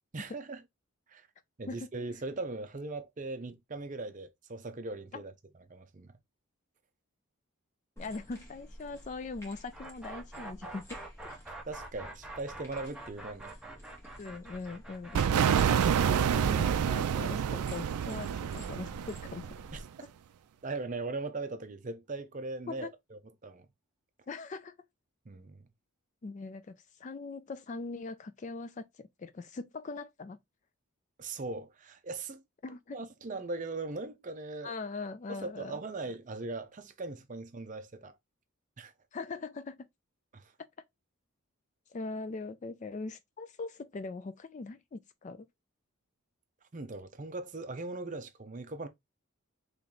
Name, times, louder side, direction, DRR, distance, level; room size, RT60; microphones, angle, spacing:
voice 1, 0.1-0.6 1.1-1.3 1.6-5.3 5.7-6.1 11.7-13.6 19.7-19.8 20.6-23.7 25.3-25.6 31.2-32.4 32.9-34.7 35.3-38.2 38.8-38.9 40.3-40.5 46.7-48.9, right 3 dB, 35° right, 0.5 m, -39 dB
voice 2, 8.0-10.8 14.2-19.5 22.7-22.9 24.3-24.7 26.2-26.7 27.0-30.4 32.6-33.0 34.6-35.8 39.1-39.8 41.9-45.5, left 3 dB, 35° left, 0.3 m, -41 dB
sound 1, 8.0-19.8, equal, 15° left, 1.1 m, -51 dB
sound 2, 9.7-19.6, right 2 dB, 5° right, 0.8 m, -47 dB
sound 3, 15.1-19.8, right 8 dB, 90° right, 0.4 m, -28 dB
3.1 x 3.1 x 3.7 m
head